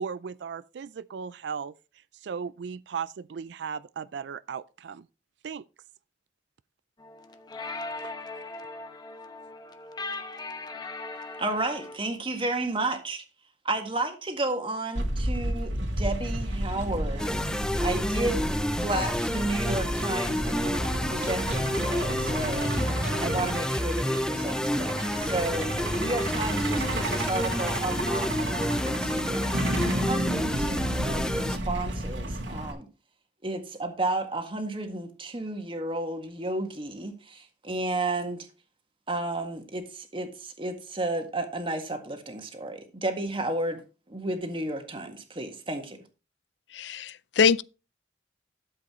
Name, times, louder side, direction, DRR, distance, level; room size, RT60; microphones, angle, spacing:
voice 1, 0.0-1.7 2.2-5.1 5.4-5.6, right 6 dB, 70° right, 0.4 m, -36 dB
sound 1, 7.0-12.0, left 3 dB, 25° left, 0.9 m, -39 dB
voice 2, 11.4-13.2 13.6-18.5 18.8-32.9 33.4-38.5 39.1-43.8 44.1-46.0, right 2 dB, 30° right, 1.7 m, -32 dB
Truck, 15.0-32.7, right 1 dB, 90° right, 2.4 m, -32 dB
sound 2, 17.2-31.6, left 1 dB, 5° left, 0.4 m, -29 dB
voice 3, 46.7-47.6, left 5 dB, 75° left, 0.4 m, -23 dB
12.0 x 7.6 x 3.1 m
head